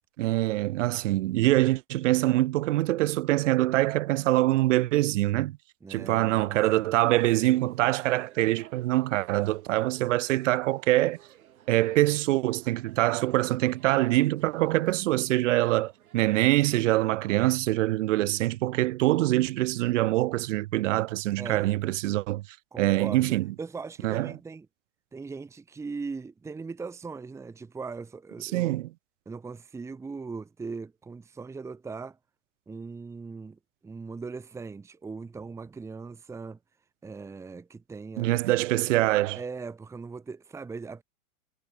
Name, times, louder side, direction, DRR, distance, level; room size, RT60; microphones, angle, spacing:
voice 1, 0.2-5.6 5.9-11.2 11.7-22.4 22.8-23.5 24.0-24.3 28.4-28.9 38.2-39.4, right 17 dB, 60° right, 0.8 m, -24 dB
voice 2, 5.8-6.9 21.4-21.7 22.7-24.7 25.1-28.8 29.2-32.2 32.7-36.6 37.0-38.3 39.3-41.0, right 4 dB, 5° right, 1.5 m, -39 dB
sound 1, 7.1-16.2, right 11 dB, 80° right, 5.0 m, -56 dB
supercardioid pair, 160°, 42 cm